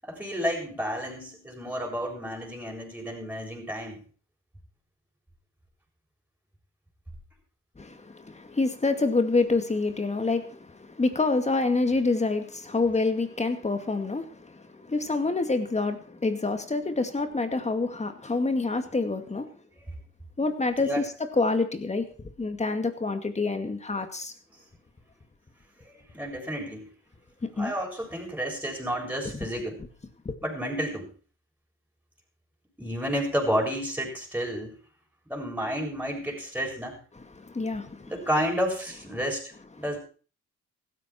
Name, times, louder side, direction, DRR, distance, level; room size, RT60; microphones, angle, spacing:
voice 1, 0.0-4.0 20.8-21.1 25.9-26.9 27.6-29.8 30.4-31.1 32.8-34.8 35.3-37.0 38.0-39.5 39.8-40.0, equal, 5° right, 0 dB, 7.1 m, -31 dB
voice 2, 7.8-19.5 20.4-21.1 21.3-22.1 22.4-24.3 27.4-27.7 30.3-30.4 37.4-38.1, left 3 dB, 20° left, 8 dB, 2.2 m, -27 dB
16.0 x 13.5 x 4.5 m, 0.40 s
cardioid pair, 90°, 30 cm